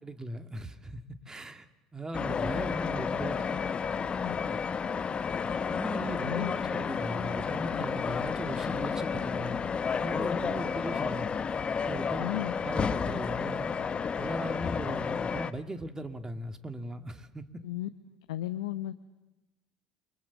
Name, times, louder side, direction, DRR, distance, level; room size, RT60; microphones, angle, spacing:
voice 1, 0.0-3.7 4.5-4.6 5.7-9.6 10.0-11.3 11.8-13.7 14.2-17.6, right 1 dB, 20° right, 9 dB, 2.5 m, -39 dB
sound 1, 2.1-15.5, left 6 dB, 35° left, 1.1 m, -31 dB
voice 2, 6.2-6.5 12.2-12.5 17.6-17.9 18.3-18.9, left 14 dB, 85° left, 11 dB, 0.9 m, -34 dB
29.0 x 24.5 x 7.3 m, 1.0 s
hypercardioid pair, 70°, 3 cm